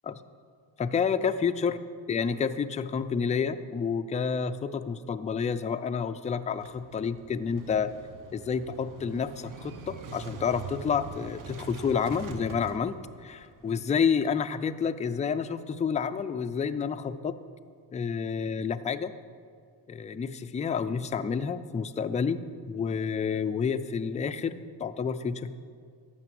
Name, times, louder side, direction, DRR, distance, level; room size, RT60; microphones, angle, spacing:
voice 1, 0.8-1.8 2.1-7.9 8.3-17.3 17.9-19.1 19.9-22.4 22.7-25.6, left 6 dB, 20° left, 10 dB, 0.3 m, -29 dB
Motorcycle / Engine starting, 6.5-13.7, right 5 dB, 45° right, 0.9 m, -44 dB
12.5 x 5.9 x 7.6 m, 2.2 s
cardioid pair, 110°, 44 cm